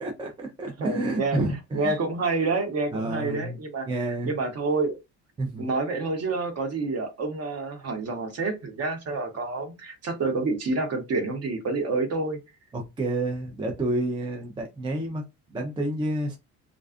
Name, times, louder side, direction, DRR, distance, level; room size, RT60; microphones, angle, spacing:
voice 1, 0.0-2.0 2.9-3.5 3.9-4.3 5.4-5.6 12.7-15.2 15.5-16.4, right 2 dB, 15° right, 0.3 m, -29 dB
voice 2, 0.8-4.9 5.6-12.4, right 3 dB, 40° right, 0.8 m, -28 dB
2.4 x 2.3 x 2.4 m
cardioid pair, 120°, 39 cm